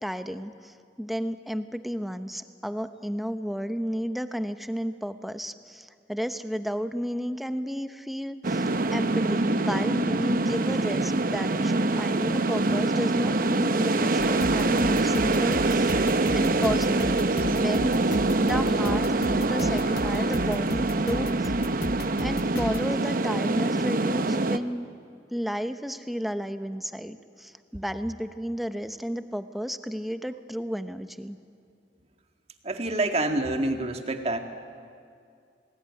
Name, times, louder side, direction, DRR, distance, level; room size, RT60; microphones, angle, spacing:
voice 1, 0.0-8.6 8.9-16.1 16.3-17.2 17.4-21.5 22.2-24.9 25.3-31.4, equal, ahead, 9 dB, 0.9 m, -32 dB
sound 1, 8.4-24.6, right 2 dB, 50° right, 0.9 m, -25 dB
sound 2, 14.2-22.8, left 2 dB, 60° left, 1.1 m, -36 dB
voice 2, 32.6-34.4, right 2 dB, 35° right, 5 dB, 2.0 m, -27 dB
29.0 x 20.0 x 9.7 m, 2.3 s
head